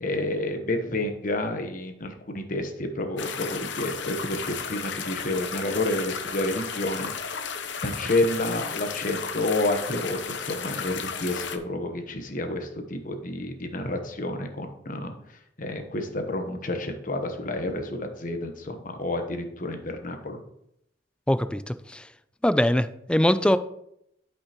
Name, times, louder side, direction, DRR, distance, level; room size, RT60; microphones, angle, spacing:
voice 1, 0.0-7.1 7.8-15.1 15.6-20.4, left 1 dB, 50° left, 5 dB, 1.1 m, -29 dB
sound 1, 3.2-11.6, left 6 dB, 80° left, 0.8 m, -34 dB
voice 2, 21.3-22.1 22.4-23.6, left 1 dB, 5° left, 12 dB, 0.3 m, -22 dB
12.0 x 5.4 x 3.0 m, 0.75 s
head